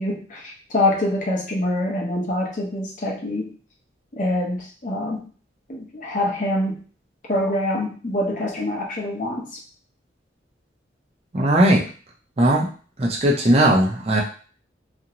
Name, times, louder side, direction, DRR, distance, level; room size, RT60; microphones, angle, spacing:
voice 1, 0.0-3.5 4.1-5.3 5.7-6.8 7.3-9.5, left 1 dB, 40° left, -1 dB, 0.6 m, -25 dB
voice 2, 11.3-11.8 12.4-12.7 13.0-14.2, right 1 dB, 30° right, -2 dB, 0.5 m, -17 dB
2.5 x 2.0 x 2.8 m, 0.39 s
head